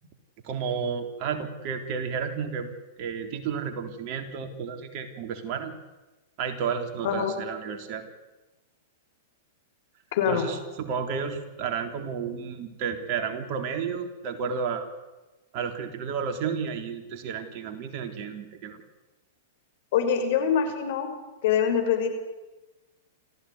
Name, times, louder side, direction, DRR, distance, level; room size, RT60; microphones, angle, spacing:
voice 1, 0.4-2.7 3.0-5.7 6.4-8.0 10.3-14.9 15.5-18.8, right 6 dB, 45° right, 5 dB, 3.8 m, -32 dB
voice 2, 10.1-10.4 19.9-21.1 21.4-22.1, left 8 dB, 60° left, 6 dB, 6.0 m, -24 dB
28.0 x 15.5 x 9.6 m, 1.1 s
hypercardioid pair, 110°, 0 cm